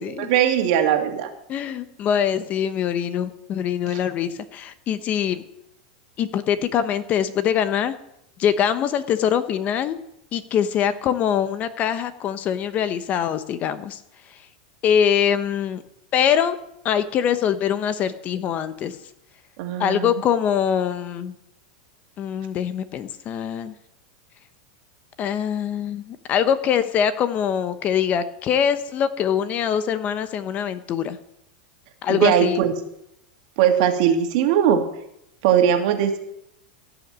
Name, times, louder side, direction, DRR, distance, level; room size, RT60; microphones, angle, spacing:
voice 1, 0.0-1.3 19.6-20.1 32.1-32.7 33.6-34.8 35.4-36.2, right 9 dB, 60° right, 5 dB, 2.2 m, -19 dB
voice 2, 1.5-5.4 6.2-7.9 8.4-10.0 10.3-14.0 14.8-15.8 16.1-16.6 16.8-19.0 19.8-21.3 22.2-23.7 25.2-31.2 32.0-32.6, left 8 dB, 35° left, 13 dB, 0.9 m, -23 dB
16.0 x 6.0 x 7.5 m, 0.78 s
supercardioid pair, 130°, 5 cm